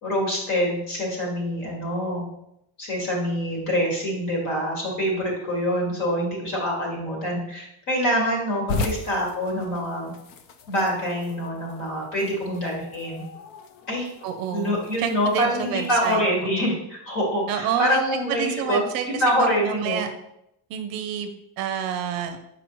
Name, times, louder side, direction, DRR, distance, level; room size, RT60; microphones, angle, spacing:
voice 1, 0.0-2.2 2.8-10.1 10.7-13.2 13.9-14.1 14.5-18.8 19.2-20.0, equal, 45° left, -2 dB, 2.2 m, -25 dB
sound 1, 8.7-16.2, left 3 dB, 70° left, 0.7 m, -37 dB
voice 2, 14.2-16.2 16.6-16.7 17.5-18.0 18.3-20.1 20.7-21.3 21.6-22.4, right 9 dB, 55° right, 7 dB, 0.6 m, -29 dB
6.2 x 4.9 x 3.0 m, 0.80 s
cardioid pair, 180°, 43 cm